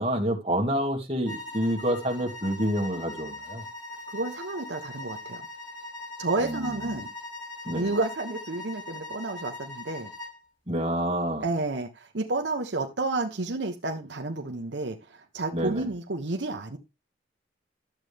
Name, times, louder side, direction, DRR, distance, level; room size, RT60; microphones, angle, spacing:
voice 1, 0.0-3.6 6.4-6.8 7.7-7.9 10.7-11.4 15.5-15.8, equal, 30° right, 2.1 m, -28 dB
sound 1, 1.2-10.4, left 2 dB, 85° left, 4.7 m, -41 dB
voice 2, 4.1-5.4 6.2-7.1 7.7-10.1 11.4-16.8, right 2 dB, 70° right, 1.0 m, -30 dB
12.0 x 7.8 x 3.4 m
head